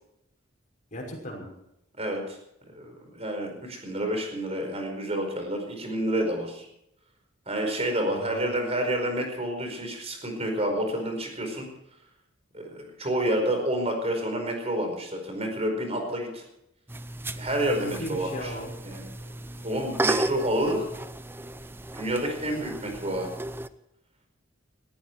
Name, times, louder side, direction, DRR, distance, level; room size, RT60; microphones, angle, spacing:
voice 1, 0.9-1.5 8.0-8.4 17.8-18.7, left 1 dB, 40° left, -1 dB, 5.9 m, -36 dB
voice 2, 2.0-2.4 2.7-6.7 7.5-11.7 12.5-16.4 17.4-18.5 18.8-20.9 21.9-23.3, right 1 dB, 35° right, 4 dB, 4.8 m, -29 dB
sound 1, 16.9-23.7, right 2 dB, 10° right, 0.6 m, -34 dB
19.5 x 14.5 x 4.7 m, 0.80 s
head